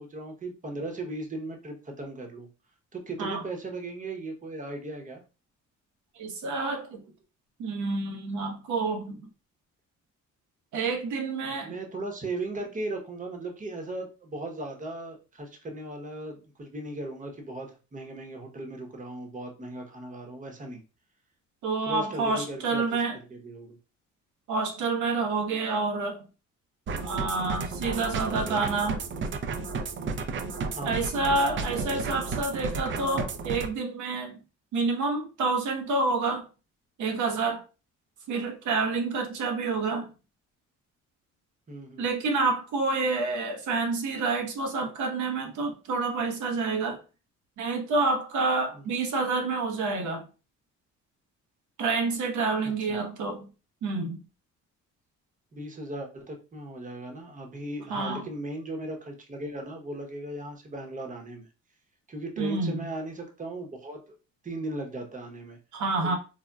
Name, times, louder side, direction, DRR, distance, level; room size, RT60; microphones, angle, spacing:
voice 1, 0.0-2.5 2.9-5.2 11.6-20.8 21.9-23.0 23.3-23.8 30.7-31.0 41.7-42.1 48.7-48.8 52.9-53.0 55.5-61.5 62.1-64.2 64.4-65.6 66.0-66.2, right 2 dB, 25° right, 0.8 m, -37 dB
voice 2, 6.2-7.0 7.6-9.2 10.7-11.7 21.6-23.2 24.5-26.2 27.0-29.0 30.8-34.4 34.7-36.5 37.0-37.6 38.3-40.1 42.0-47.0 47.6-50.2 51.8-53.5 53.8-54.2 57.9-58.3 62.4-62.8 65.7-66.2, right 3 dB, 80° right, 0.8 m, -28 dB
sound 1, 26.9-33.7, right 4 dB, 40° right, 0.4 m, -32 dB
3.9 x 2.1 x 2.2 m
cardioid pair, 90°, 30 cm